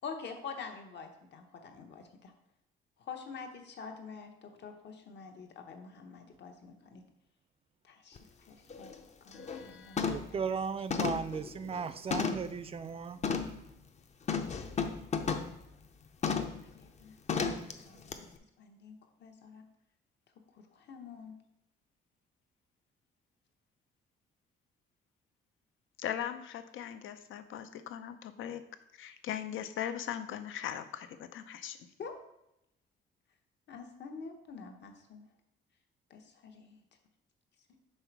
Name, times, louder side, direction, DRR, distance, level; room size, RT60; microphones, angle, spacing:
voice 1, 0.0-2.3 3.0-7.0 7.8-8.2 8.5-8.9 9.2-10.4 16.8-17.2 17.4-19.6 20.5-21.3 32.0-32.1 33.7-35.3 36.1-36.8, left 5 dB, 60° left, 4 dB, 1.0 m, -47 dB
sound 1, 8.2-8.3 8.7-8.9 9.3-9.6 10.0-10.4 10.9-12.6 13.2-13.6 14.3-15.6 16.2-16.6 17.3-17.7 18.1-18.2, left 5 dB, 35° left, 0.6 m, -33 dB
voice 2, 9.3-10.2 26.0-28.6 29.0-31.8, left 10 dB, 80° left, 10 dB, 0.6 m, -40 dB
voice 3, 10.1-13.2, right 6 dB, 30° right, 12 dB, 0.4 m, -36 dB
5.6 x 4.0 x 4.5 m, 0.83 s
cardioid pair, 115°, 20 cm